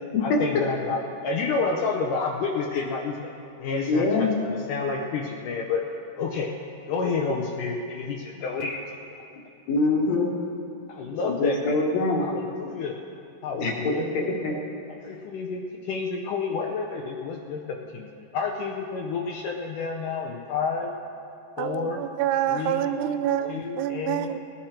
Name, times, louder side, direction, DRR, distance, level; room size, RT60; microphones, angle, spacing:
voice 1, 0.2-3.3 3.6-5.8 6.2-6.5 6.9-9.0 10.9-11.8 12.2-13.0 13.4-14.0 15.0-20.9 21.6-22.0 22.5-22.9 23.5-24.3, left 4 dB, 75° left, 0 dB, 2.2 m, -30 dB
voice 2, 3.9-4.3 9.7-10.3 11.2-12.3 13.6-14.5, left 3 dB, 60° left, -1 dB, 2.4 m, -24 dB
voice 3, 21.6-24.4, right 10 dB, 80° right, 10 dB, 2.1 m, -27 dB
19.0 x 11.0 x 4.4 m, 2.6 s
omnidirectional pair, 4.0 m